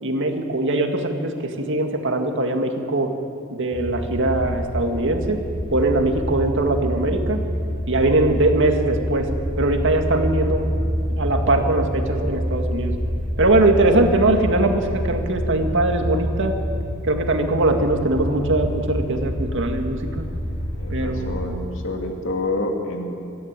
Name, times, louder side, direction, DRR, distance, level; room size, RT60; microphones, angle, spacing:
voice 1, 0.0-3.1 3.5-5.4 5.7-7.4 7.9-9.3 9.6-10.7 11.1-12.9 13.4-16.5 17.0-20.3 20.9-21.6, right 2 dB, 60° right, 4 dB, 2.1 m, -21 dB
sound 1, 3.7-21.4, equal, 40° left, 7.2 m, -27 dB
voice 2, 20.7-23.2, left 2 dB, 65° left, 2 dB, 2.5 m, -28 dB
23.5 x 14.0 x 9.0 m, 2.6 s
head